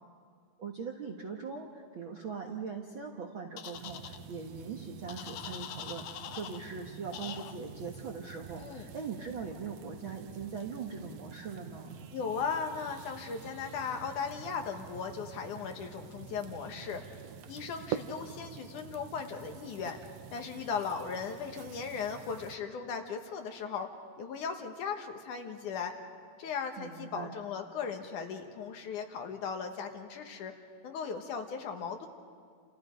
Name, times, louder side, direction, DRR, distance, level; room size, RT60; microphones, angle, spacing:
voice 1, 0.6-12.0 26.8-27.3, right 5 dB, 60° right, 1 dB, 1.3 m, -41 dB
sound 1, 3.6-4.2 5.1-6.6 7.1-7.5, left 9 dB, 80° left, 2.7 m, -43 dB
sound 2, 3.7-22.6, right 9 dB, 90° right, 1.4 m, -47 dB
voice 2, 12.1-17.0 17.5-20.0 20.3-23.9 24.2-25.9 26.4-30.6 30.8-32.1, left 6 dB, 65° left, 5 dB, 2.6 m, -37 dB
29.0 x 28.0 x 5.1 m, 2.1 s
omnidirectional pair, 4.1 m